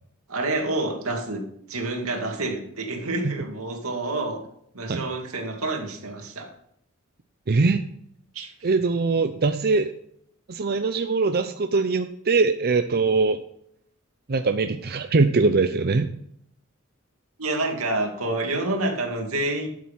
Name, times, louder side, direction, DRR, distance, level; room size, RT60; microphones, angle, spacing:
voice 1, 0.3-1.4 1.7-4.4 4.7-6.5 8.3-8.7 17.4-19.7, right 2 dB, 90° right, 2 dB, 2.5 m, -28 dB
voice 2, 7.5-7.8 8.6-9.9 10.5-13.4 14.3-16.1, right 3 dB, 50° right, 8 dB, 0.6 m, -22 dB
12.5 x 7.6 x 5.7 m, 0.71 s
head